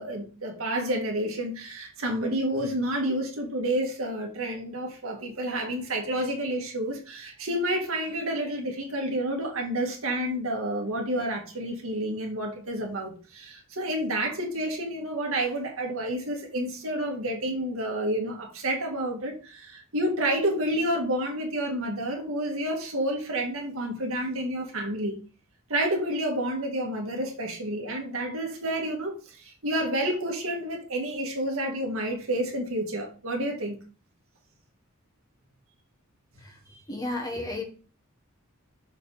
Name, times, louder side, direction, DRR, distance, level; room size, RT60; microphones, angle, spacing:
voice 1, 0.0-25.2 25.7-33.8, right 1 dB, 75° right, 1 dB, 1.9 m, -29 dB
voice 2, 36.4-37.6, left 2 dB, 15° left, 2 dB, 1.2 m, -34 dB
6.7 x 4.9 x 4.0 m, 0.36 s
head